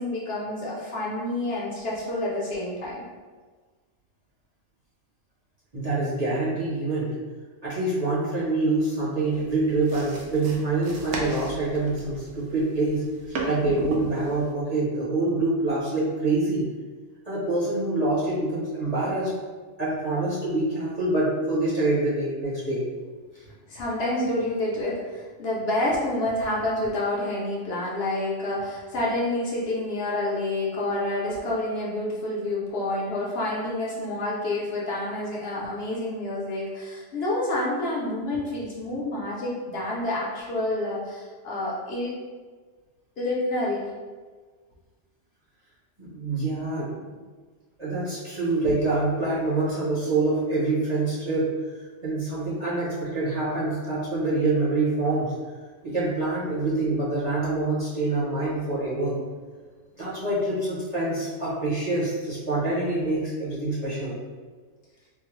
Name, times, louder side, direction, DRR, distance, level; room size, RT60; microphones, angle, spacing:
voice 1, 0.0-3.0 23.7-42.1 43.2-43.8, left 1 dB, 60° left, -5 dB, 0.8 m, -28 dB
voice 2, 5.7-7.2 7.6-16.7 17.2-19.3 19.8-22.8 23.3-23.4 46.0-47.2 47.8-51.5 52.0-55.4 55.8-59.2 60.0-64.2, right 2 dB, 40° right, -9 dB, 0.7 m, -26 dB
sound 1, 9.3-14.5, right 2 dB, 70° right, 0.9 m, -35 dB
3.7 x 2.0 x 3.0 m, 1.4 s
omnidirectional pair, 1.3 m